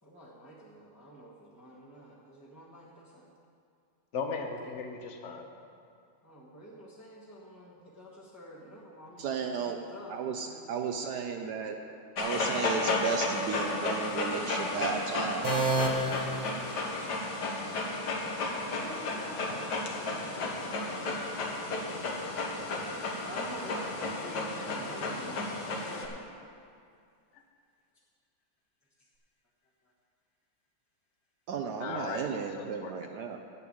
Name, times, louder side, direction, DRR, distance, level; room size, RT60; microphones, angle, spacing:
voice 1, 0.0-3.3 6.2-9.4 9.7-10.7 11.5-12.0 18.7-21.2 22.7-23.0 23.3-26.3, equal, 10° left, -7 dB, 1.1 m, -48 dB
voice 2, 4.1-5.5 27.3-27.4 31.8-32.2 32.5-32.9, left 5 dB, 45° left, 4 dB, 1.1 m, -37 dB
voice 3, 9.2-9.8 10.1-11.8 12.2-15.6 31.5-33.4, right 6 dB, 70° right, 4 dB, 1.1 m, -34 dB
Dog, 12.2-26.1, left 2 dB, 65° left, 1.8 m, -33 dB
sound 1, 15.4-17.3, right 2 dB, 30° right, 0.9 m, -31 dB
9.2 x 6.7 x 8.6 m, 2.3 s
omnidirectional pair, 2.0 m